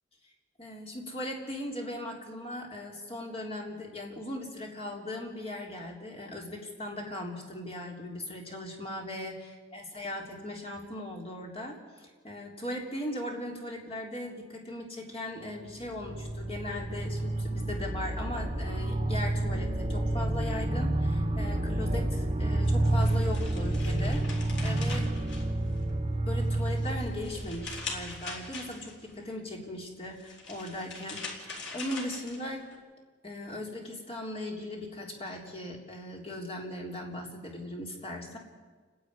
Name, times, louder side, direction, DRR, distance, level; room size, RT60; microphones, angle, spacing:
voice 1, 0.6-25.0 26.3-32.6 33.2-38.4, left 1 dB, 30° left, 0 dB, 3.6 m, -38 dB
sound 1, 15.7-28.5, right 1 dB, 30° right, 0.9 m, -29 dB
sound 2, 22.6-26.0 26.4-29.1 30.0-32.8, left 4 dB, 60° left, 3.7 m, -42 dB
29.0 x 10.5 x 9.8 m, 1.4 s
head